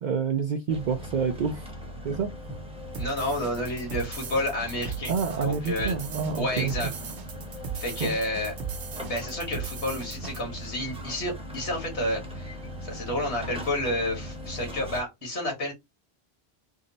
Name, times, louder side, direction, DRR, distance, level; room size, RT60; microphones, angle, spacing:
voice 1, 0.0-1.7 2.0-2.3 5.1-6.7 8.0-8.1, right 6 dB, 55° right, 0.6 m, -28 dB
sound 1, 0.7-15.0, equal, 5° right, 0.8 m, -39 dB
sound 2, 2.9-10.4, right 6 dB, 85° right, 1.1 m, -38 dB
voice 2, 3.0-5.1 5.4-6.0 6.4-6.9 7.7-8.5 9.0-12.6 12.8-15.7, left 1 dB, 85° left, 1.8 m, -30 dB
3.6 x 2.0 x 3.9 m
omnidirectional pair, 1.1 m